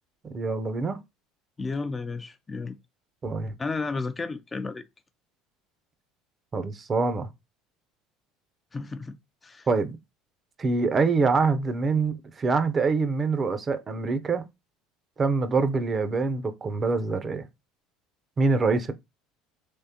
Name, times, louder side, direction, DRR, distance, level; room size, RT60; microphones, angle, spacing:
voice 1, 0.2-1.0 3.2-3.5 6.5-7.3 9.7-10.0 10.6-14.4 15.2-17.5 18.4-18.9, right 4 dB, 30° right, 0.6 m, -25 dB
voice 2, 1.6-2.8 3.6-4.8 8.7-9.7, left 4 dB, 20° left, 0.4 m, -33 dB
3.6 x 3.0 x 2.8 m
supercardioid pair, 95°, 0 cm